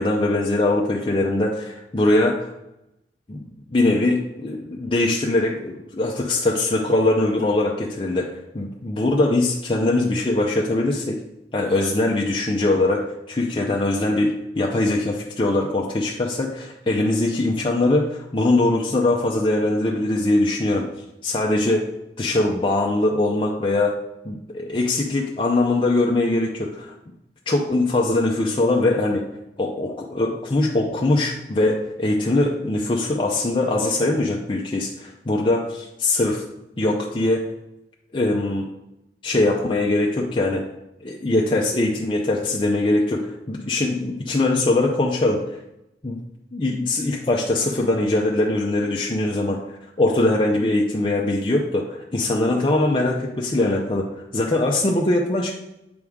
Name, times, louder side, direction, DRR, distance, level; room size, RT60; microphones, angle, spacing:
voice 1, 0.0-2.5 3.3-11.2 11.5-20.9 21.2-21.9 22.2-24.0 24.2-26.9 27.5-29.3 29.6-36.4 36.8-37.5 38.1-38.7 39.2-40.6 41.0-45.6 46.0-46.2 46.5-49.6 50.0-55.5, left 2 dB, 30° left, -1 dB, 0.5 m, -22 dB
7.8 x 4.9 x 3.6 m, 0.89 s
head